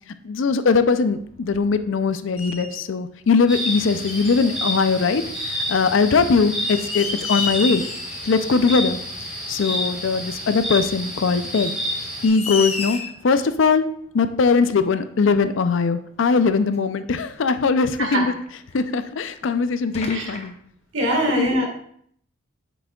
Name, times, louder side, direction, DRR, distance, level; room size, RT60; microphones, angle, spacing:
voice 1, 0.2-7.8 8.2-9.0 9.5-11.8 12.2-13.0 13.2-13.8 14.1-18.3 18.7-20.6 21.3-21.5, left 4 dB, 65° left, 11 dB, 0.4 m, -20 dB
sound 1, 1.1-2.0 2.4-2.8 4.0-4.5 5.9-6.0 6.5-8.2 8.6-8.7 10.2-10.3 11.3-11.4 11.9-12.0 12.2-13.3 14.6-14.7 15.4-15.5 15.8-15.9 16.6-16.8 18.1-19.0 19.5-19.6 19.9-20.5, left 5 dB, 30° left, 0.8 m, -31 dB
sound 2, 3.5-12.3, equal, 5° right, 2.7 m, -29 dB
voice 2, 20.9-21.7, equal, 65° right, 1 dB, 1.7 m, -22 dB
7.9 x 6.1 x 2.3 m, 0.65 s
head